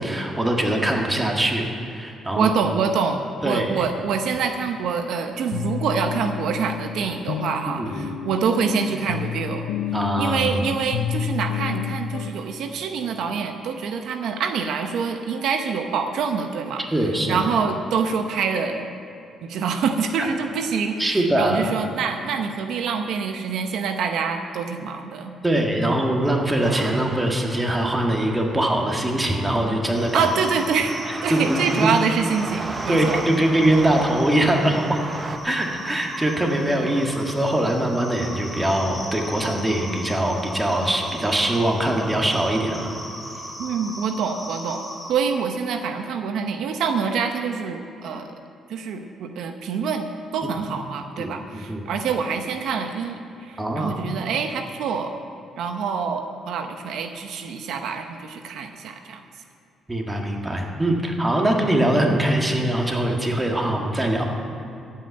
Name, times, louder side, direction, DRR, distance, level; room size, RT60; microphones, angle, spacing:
voice 1, 0.0-2.5 3.4-3.8 7.8-8.1 9.9-10.6 16.9-17.4 20.2-20.3 21.0-21.7 25.4-30.3 31.3-31.9 32.9-35.0 35.4-42.9 50.4-50.5 51.2-51.8 53.6-53.9 59.9-64.3, right 1 dB, 15° right, 1 dB, 1.8 m, -22 dB
voice 2, 2.4-9.7 10.2-16.8 17.3-18.9 19.4-25.3 30.1-31.0 31.2-33.2 43.6-48.3 48.7-50.1 50.3-55.1 55.6-59.2, right 6 dB, 80° right, 6 dB, 0.8 m, -26 dB
sound 1, 3.8-3.9 4.3-4.4 4.9-5.0 5.5-12.3, left 8 dB, 90° left, 0.5 m, -30 dB
sound 2, 26.6-35.4, right 3 dB, 30° right, 0.8 m, -35 dB
sound 3, 29.9-45.1, equal, 10° left, 3.4 m, -38 dB
14.0 x 5.6 x 8.8 m, 2.7 s
cardioid pair, 90°, 0 cm